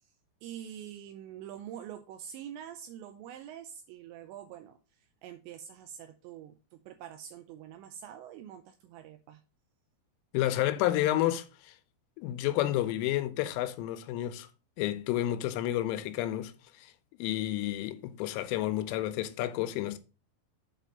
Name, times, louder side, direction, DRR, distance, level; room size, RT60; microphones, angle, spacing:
voice 1, 0.4-4.8 5.2-9.4, right 10 dB, 85° right, 2.6 m, -45 dB
voice 2, 10.3-11.7 12.2-14.5 14.8-16.9 17.2-20.0, left 13 dB, 90° left, 3.2 m, -30 dB
8.1 x 4.1 x 5.2 m
omnidirectional pair, 5.6 m